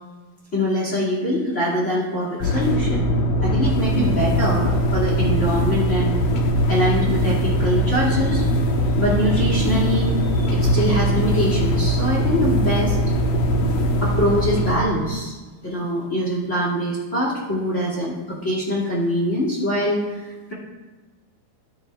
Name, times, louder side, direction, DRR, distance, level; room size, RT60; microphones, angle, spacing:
voice 1, 0.5-3.0 3.4-6.2 6.7-13.2 14.0-15.3 15.6-20.5, equal, 30° left, -4 dB, 1.4 m, -24 dB
sound 1, 2.4-14.8, equal, 75° left, 2.5 m, -21 dB
18.5 x 9.0 x 2.3 m, 1.3 s
omnidirectional pair, 4.5 m